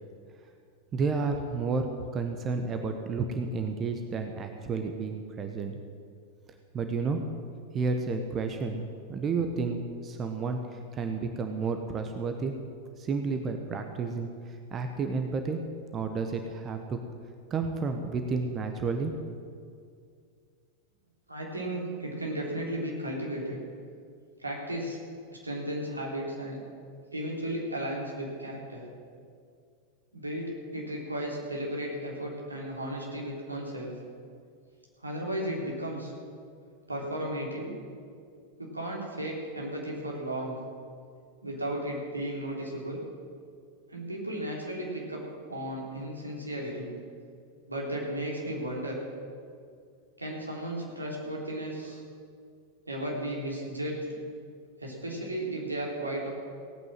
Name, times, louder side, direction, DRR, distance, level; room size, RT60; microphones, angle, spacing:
voice 1, 0.9-5.8 6.7-7.2 7.7-12.5 13.0-15.6 15.9-17.0 17.5-19.1, right 4 dB, 25° right, 5 dB, 1.2 m, -31 dB
voice 2, 21.3-23.6 24.4-25.0 25.4-26.6 27.1-28.8 30.1-33.9 35.0-36.1 36.9-37.7 38.6-40.6 41.4-43.0 43.9-45.2 45.5-46.9 47.7-49.0 50.2-52.0 52.9-54.1 54.8-56.3, right 1 dB, 80° right, -3 dB, 3.6 m, -34 dB
17.0 x 9.5 x 7.5 m, 2.2 s
figure-of-eight pair, 90°, 0 cm